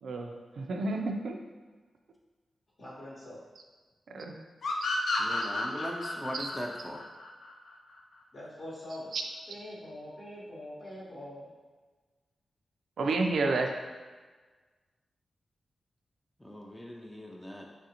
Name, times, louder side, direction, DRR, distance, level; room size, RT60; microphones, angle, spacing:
voice 1, 0.0-1.4 4.1-4.3 6.4-6.5 9.1-9.2 13.0-13.7, right 3 dB, 85° right, 3 dB, 0.3 m, -30 dB
voice 2, 2.8-3.4 8.3-9.1 9.5-11.5, left 1 dB, 50° left, -8 dB, 0.8 m, -43 dB
sound 1, 4.6-8.0, left 2 dB, 75° left, 0.4 m, -32 dB
voice 3, 5.2-7.0 16.4-17.6, equal, 10° left, -1 dB, 0.4 m, -39 dB
3.2 x 2.5 x 2.8 m, 1.4 s
cardioid pair, 70°, 0 cm